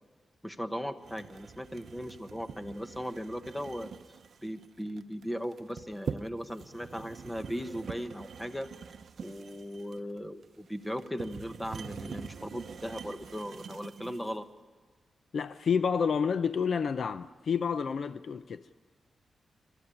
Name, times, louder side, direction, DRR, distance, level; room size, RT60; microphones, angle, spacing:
voice 1, 0.4-3.9 4.4-8.7 9.2-14.5, equal, 5° left, 1.1 m, -38 dB
sound 1, 1.0-14.4, right 6 dB, 60° right, 0.7 m, -44 dB
voice 2, 15.3-18.6, left 6 dB, 60° left, 0.6 m, -29 dB
25.0 x 14.0 x 9.9 m
wide cardioid pair, 115°, 0 cm